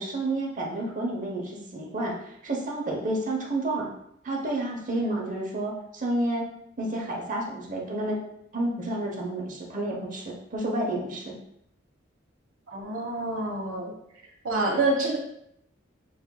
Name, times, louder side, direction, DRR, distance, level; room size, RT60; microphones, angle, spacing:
voice 1, 0.0-3.9 4.2-6.5 6.8-8.2 8.5-11.4, right 1 dB, 40° right, 0 dB, 0.8 m, -30 dB
voice 2, 4.9-5.3 12.7-13.9 14.4-15.2, right 2 dB, 80° right, -1 dB, 1.1 m, -27 dB
6.9 x 2.6 x 2.3 m, 0.75 s
head